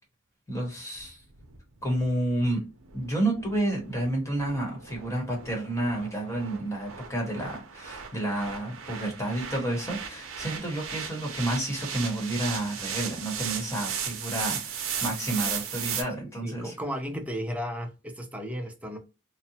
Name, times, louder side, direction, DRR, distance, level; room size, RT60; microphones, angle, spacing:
voice 1, 0.5-1.2 1.8-2.6 2.9-16.7, right 1 dB, 15° left, 1.0 m, -30 dB
sound 1, 1.0-16.0, right 7 dB, 80° right, 0.6 m, -36 dB
voice 2, 16.2-19.0, equal, 5° right, 0.5 m, -34 dB
2.8 x 2.0 x 2.7 m
head